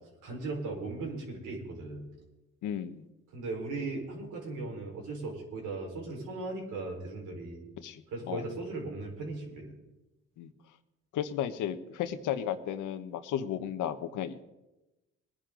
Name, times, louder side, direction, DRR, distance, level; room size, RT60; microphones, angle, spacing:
voice 1, 0.2-2.1 3.3-7.7 8.1-9.7, right 3 dB, 80° right, 0 dB, 4.5 m, -37 dB
voice 2, 2.6-3.0 7.8-8.0 8.3-8.4 10.4-10.5 11.1-14.4, left 10 dB, 85° left, 10 dB, 1.1 m, -34 dB
21.0 x 10.5 x 3.9 m, 1.0 s
cardioid pair, 90°, 30 cm